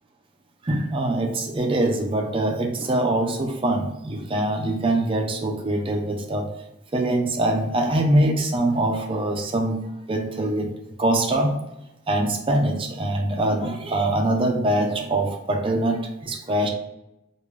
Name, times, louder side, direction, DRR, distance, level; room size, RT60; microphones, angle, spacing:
voice 1, 0.6-6.5 6.9-9.8 10.1-10.7 11.0-11.5 12.1-16.7, right 1 dB, 30° right, 3 dB, 0.4 m, -23 dB
3.3 x 2.4 x 3.2 m, 0.91 s
head